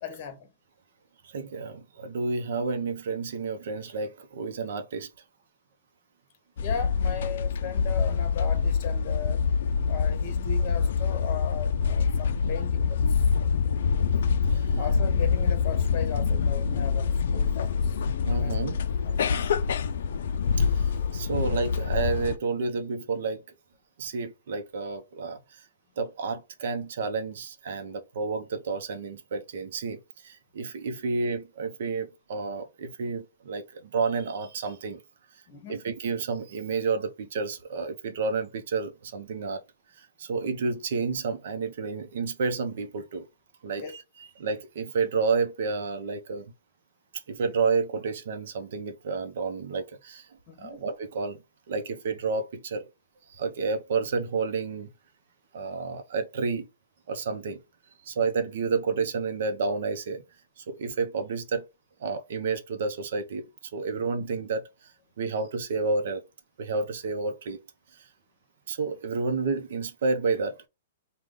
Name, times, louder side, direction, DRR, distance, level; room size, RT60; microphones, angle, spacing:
voice 1, 0.0-0.5 6.6-9.4 9.9-13.2 14.7-18.0 18.3-18.5 19.0-19.1 35.5-35.8 43.8-43.9 50.5-50.8 64.2-64.3, left 7 dB, 30° left, 1.0 m, -37 dB
voice 2, 1.2-5.1 14.5-14.8 18.2-18.8 20.6-23.4 24.0-25.7 26.0-35.0 35.3-35.4 35.7-39.6 39.9-43.3 43.6-46.5 47.3-51.4 51.7-52.9 53.3-54.9 55.5-56.7 57.1-57.6 58.0-60.2 60.6-61.6 62.0-66.2 66.6-67.6 67.9-68.1 68.7-70.7, right 4 dB, 55° right, 0.8 m, -30 dB
sound 1, 6.6-22.4, left 6 dB, 60° left, 0.4 m, -25 dB
5.0 x 2.3 x 3.7 m
hypercardioid pair, 175°, 0 cm